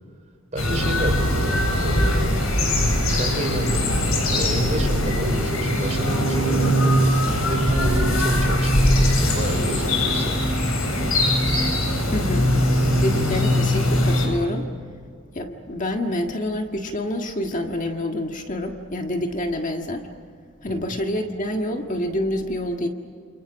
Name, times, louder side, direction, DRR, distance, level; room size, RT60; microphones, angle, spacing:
voice 1, 0.5-2.3 3.1-6.9 7.5-10.5 20.7-21.0, right 1 dB, 30° right, 3 dB, 4.8 m, -29 dB
sound 1, 0.6-14.3, left 1 dB, 75° left, 7.4 m, -21 dB
voice 2, 12.1-12.5 13.0-14.7 15.3-20.1 20.6-22.9, left 1 dB, 35° left, 3 dB, 1.7 m, -27 dB
29.0 x 29.0 x 6.3 m, 2.1 s
head